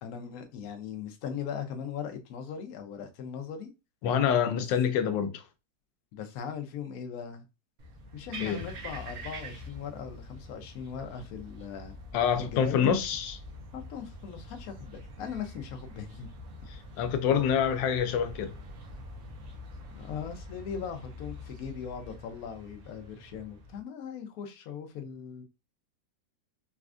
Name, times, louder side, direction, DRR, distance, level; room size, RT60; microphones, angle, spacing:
voice 1, 0.0-3.7 6.1-7.4 8.1-12.0 12.5-13.0 13.7-16.3 19.9-25.4, left 7 dB, 65° left, 0.9 m, -39 dB
voice 2, 4.0-5.4 8.4-8.6 12.1-13.3 17.0-18.5, left 8 dB, 90° left, 1.3 m, -26 dB
sound 1, 7.8-23.8, equal, 60° right, 1.1 m, -45 dB
4.1 x 2.3 x 2.4 m
omnidirectional pair, 1.9 m